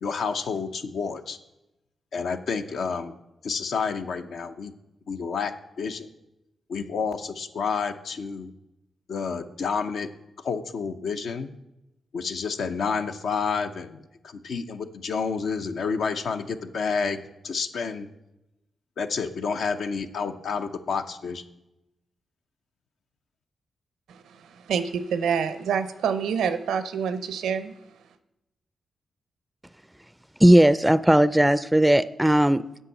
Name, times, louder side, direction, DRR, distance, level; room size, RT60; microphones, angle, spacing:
voice 1, 0.0-1.4 2.1-3.2 3.4-4.7 5.1-5.5 5.8-6.1 6.7-8.5 9.1-10.1 10.4-11.5 12.1-17.2 17.4-18.1 19.0-21.4, left 5 dB, 75° left, 7 dB, 0.7 m, -29 dB
voice 2, 24.1-27.7, right 7 dB, 85° right, 11 dB, 0.6 m, -27 dB
voice 3, 30.4-32.8, right 1 dB, 10° right, 16 dB, 0.4 m, -18 dB
8.1 x 5.6 x 7.3 m, 0.91 s
supercardioid pair, 50°, 0 cm